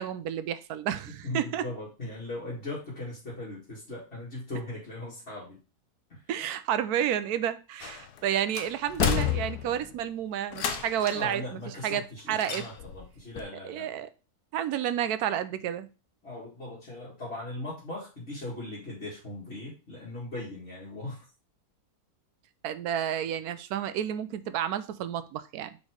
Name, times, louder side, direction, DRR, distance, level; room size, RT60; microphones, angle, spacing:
voice 1, 0.0-1.6 6.3-11.4 11.8-12.0 12.3-12.6 13.7-14.1 14.5-15.9 22.6-25.8, right 10 dB, 75° right, 1.1 m, -30 dB
voice 2, 1.1-5.6 6.1-6.2 11.1-13.9 16.2-21.3, left 2 dB, 40° left, 2.5 m, -39 dB
sound 1, 7.8-8.2 8.6-9.9 10.5-11.3 12.4-13.1 13.4-13.5, left 8 dB, 80° left, 1.3 m, -30 dB
4.8 x 4.3 x 4.6 m
omnidirectional pair, 1.7 m